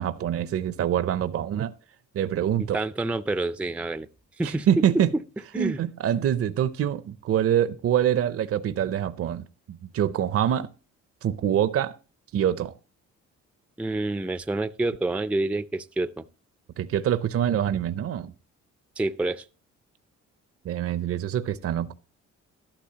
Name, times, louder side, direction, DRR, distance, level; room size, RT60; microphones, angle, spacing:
voice 1, 0.0-1.7 2.1-2.8 4.4-5.1 5.6-10.7 11.2-11.9 12.3-12.7 16.8-18.3 20.6-21.9, right 10 dB, 50° right, 0.6 m, -25 dB
voice 2, 2.7-4.1 4.4-4.7 5.1-5.2 5.5-5.8 13.8-16.2 19.0-19.4, right 2 dB, 5° right, 0.4 m, -28 dB
13.0 x 12.0 x 2.8 m
cardioid pair, 90°, 30 cm